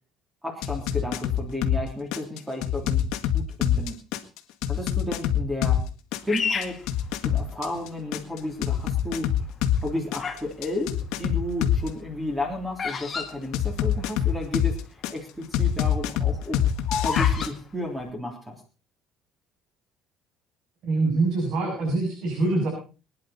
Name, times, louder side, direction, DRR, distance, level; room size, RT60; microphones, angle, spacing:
voice 1, 0.4-3.0 3.3-4.0 4.7-5.8 6.3-6.8 7.2-9.3 9.8-14.8 15.1-16.7 17.0-18.6, left 1 dB, 10° right, 2 dB, 3.4 m, -32 dB
sound 1, 0.6-1.8 2.1-5.8 6.1-9.8 10.1-11.9 13.5-15.1 15.5-17.5, left 10 dB, 80° left, 1.8 m, -24 dB
Bird vocalization bird call bird song, 6.3-7.8 8.4-8.9 9.6-10.5 10.8-14.3 14.6-14.7 14.8-15.2 15.6-17.5, left 6 dB, 25° left, 2.2 m, -31 dB
voice 2, 20.8-22.7, right 3 dB, 60° right, -2 dB, 7.9 m, -24 dB
23.5 x 10.5 x 4.3 m, 0.34 s
cardioid pair, 145°, 0 cm